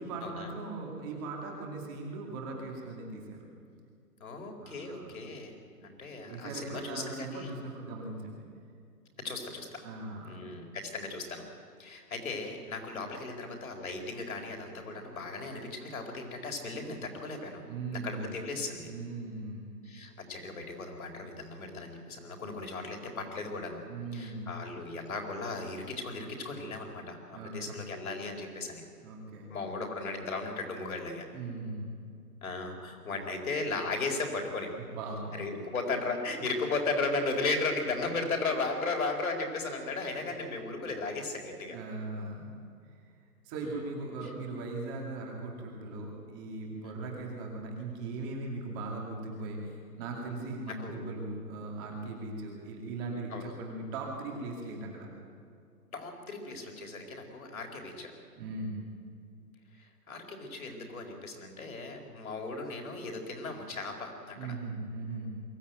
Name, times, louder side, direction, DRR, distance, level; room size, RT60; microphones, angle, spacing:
voice 1, 0.0-3.5 4.6-5.4 6.3-8.5 9.8-10.5 17.6-18.3 18.8-19.7 23.9-24.5 27.3-27.8 29.0-29.5 31.3-31.9 34.8-35.4 41.7-42.5 42.9-43.0 43.4-55.1 58.3-58.8 64.3-65.3, right 3 dB, 15° right, 0 dB, 2.3 m, -39 dB
voice 2, 4.2-5.5 5.8-7.5 9.2-9.9 10.3-11.4 11.8-17.6 17.9-18.9 19.8-23.8 24.1-28.8 29.5-31.2 32.4-34.7 35.4-41.8 44.2-44.3 50.8-51.1 53.3-53.5 55.9-58.1 59.7-64.5, left 3 dB, 60° left, 3 dB, 4.5 m, -36 dB
23.0 x 15.0 x 9.2 m, 2.3 s
hypercardioid pair, 175°, 48 cm